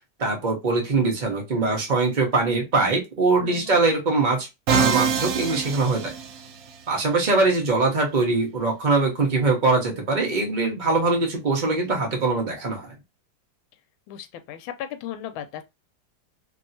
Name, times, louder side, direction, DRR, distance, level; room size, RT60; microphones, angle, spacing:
voice 1, 0.2-6.1 6.9-12.9, right 3 dB, 40° right, 0.6 m, -22 dB
voice 2, 3.4-3.8 14.1-15.6, left 10 dB, 85° left, 1.4 m, -36 dB
Musical instrument, 4.7-6.8, right 6 dB, 70° right, 0.8 m, -24 dB
3.1 x 2.7 x 2.6 m
omnidirectional pair, 2.2 m